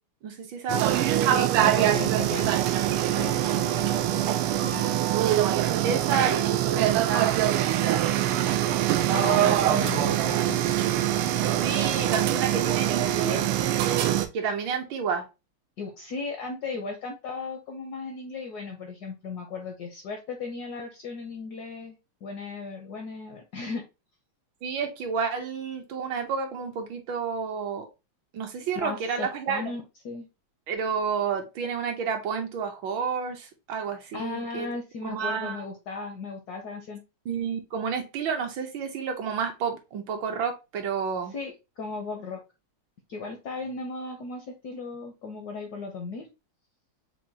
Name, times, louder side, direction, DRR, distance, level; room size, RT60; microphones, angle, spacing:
voice 1, 0.2-1.2 5.2-5.4 5.8-8.2 9.0-10.0 11.6-13.5 14.3-15.2 24.6-27.9 28.3-29.7 30.7-34.7 35.0-35.6 37.3-41.3, right 6 dB, 70° right, 4 dB, 1.4 m, -30 dB
sound 1, 0.7-14.3, right 12 dB, 90° right, 1.5 m, -24 dB
voice 2, 1.3-2.6 2.9-5.0 9.1-10.6 15.8-22.0 22.2-23.8 28.7-30.3 34.1-37.0 41.3-42.4 43.1-46.3, left 4 dB, 70° left, 4 dB, 0.9 m, -36 dB
6.1 x 2.2 x 2.7 m, 0.26 s
omnidirectional pair, 2.4 m